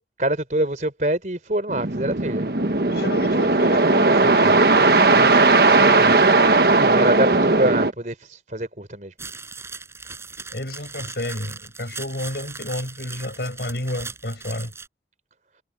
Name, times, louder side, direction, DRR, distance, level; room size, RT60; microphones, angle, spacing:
voice 1, 0.2-2.5 6.7-9.1, right 1 dB, 45° right, 4.2 m, -25 dB
sound 1, 1.7-7.9, right 3 dB, 60° right, 1.3 m, -17 dB
voice 2, 2.9-6.2 10.5-14.7, left 1 dB, 65° left, 6.5 m, -32 dB
sound 2, 9.2-14.9, right 4 dB, 15° right, 5.8 m, -38 dB
head